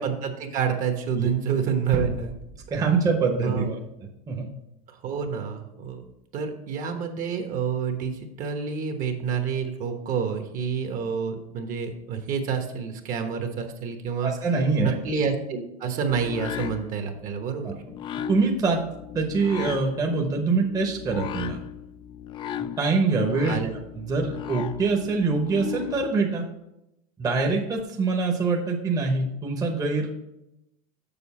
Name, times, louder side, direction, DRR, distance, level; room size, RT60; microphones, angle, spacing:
voice 1, 0.0-2.3 3.4-3.8 4.9-6.0 6.3-14.3 14.8-17.7 23.5-23.8, right 6 dB, 45° right, 5 dB, 1.1 m, -28 dB
sound 1, 1.9-3.9 4.3-4.4, right 4 dB, 60° right, 0.7 m, -35 dB
voice 2, 2.7-3.6 4.3-4.5 14.2-15.0 17.6-17.7 18.3-18.8 19.1-21.6 22.8-23.6 23.9-26.4 27.2-30.2, right 4 dB, 20° right, 1 dB, 0.9 m, -24 dB
sound 2, 16.1-26.1, left 9 dB, 25° left, 0.3 m, -37 dB
7.0 x 6.4 x 4.2 m, 0.87 s
supercardioid pair, 135°, 19 cm